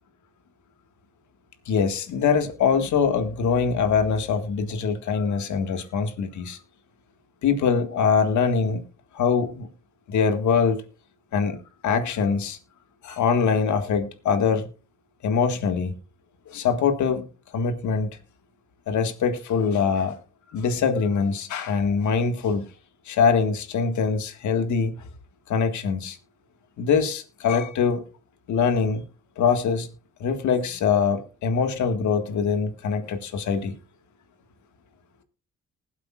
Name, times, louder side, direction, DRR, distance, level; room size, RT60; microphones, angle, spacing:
voice 1, 1.7-6.6 7.4-8.8 9.1-9.7 10.1-10.8 11.3-12.6 13.0-14.7 15.2-15.9 16.5-18.1 18.9-20.2 20.5-22.7 23.1-24.9 25.5-26.2 26.8-28.1 28.5-29.0 29.4-29.9 30.2-33.7, left 6 dB, 75° left, 1.8 m, -23 dB
20.0 x 8.1 x 2.4 m
cardioid pair, 90°, 30 cm